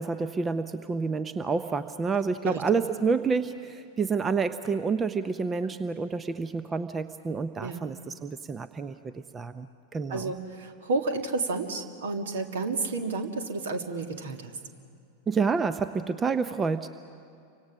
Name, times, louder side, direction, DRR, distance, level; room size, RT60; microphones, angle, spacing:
voice 1, 0.0-9.7 9.9-10.3 15.3-16.9, right 5 dB, 20° right, 12 dB, 0.7 m, -29 dB
voice 2, 10.1-14.6, right 3 dB, 60° right, 6 dB, 2.0 m, -31 dB
29.5 x 25.0 x 6.3 m, 2.4 s
figure-of-eight pair, 90°, 0 cm